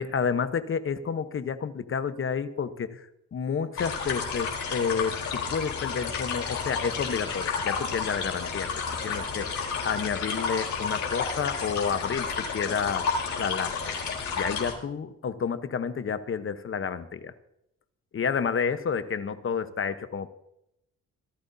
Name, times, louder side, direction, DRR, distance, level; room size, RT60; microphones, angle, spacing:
voice 1, 0.0-3.1 3.3-8.7 9.0-13.1 13.4-13.9 14.4-17.3 18.1-20.3, left 6 dB, 45° left, 11 dB, 1.0 m, -30 dB
sound 1, 3.8-14.7, left 5 dB, 70° left, 4.1 m, -31 dB
26.0 x 12.0 x 2.8 m, 0.80 s
cardioid pair, 90°, 30 cm